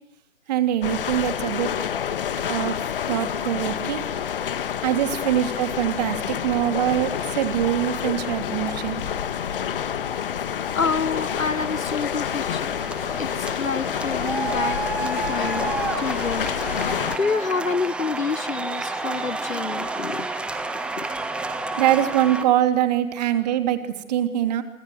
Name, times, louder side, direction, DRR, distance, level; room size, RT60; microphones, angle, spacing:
voice 1, 0.5-1.7 2.5-4.0 4.8-9.0 21.8-24.6, right 12 dB, 30° right, 9 dB, 3.0 m, -23 dB
sound 1, 0.8-17.2, left 8 dB, 45° left, 1.8 m, -28 dB
voice 2, 10.7-12.8 13.2-16.5 16.7-20.3 20.7-21.1, left 5 dB, 90° left, 21 dB, 1.2 m, -28 dB
sound 2, 11.1-22.4, right 3 dB, 5° right, 1.4 m, -31 dB
28.5 x 25.5 x 8.0 m, 0.82 s
figure-of-eight pair, 140°, 39 cm